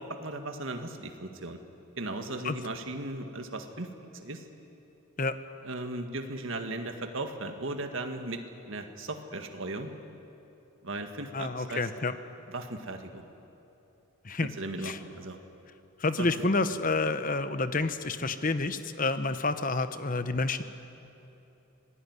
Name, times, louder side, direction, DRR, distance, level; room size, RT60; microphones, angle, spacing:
voice 1, 0.0-1.6 2.0-4.4 5.6-9.9 10.8-11.9 12.5-13.3 14.6-15.4 16.2-16.3, right 2 dB, 65° right, 5 dB, 1.9 m, -37 dB
voice 2, 11.3-12.1 14.2-14.5 14.8-15.0 16.0-20.6, left 3 dB, 40° left, 11 dB, 1.0 m, -29 dB
26.0 x 18.0 x 9.6 m, 2.9 s
head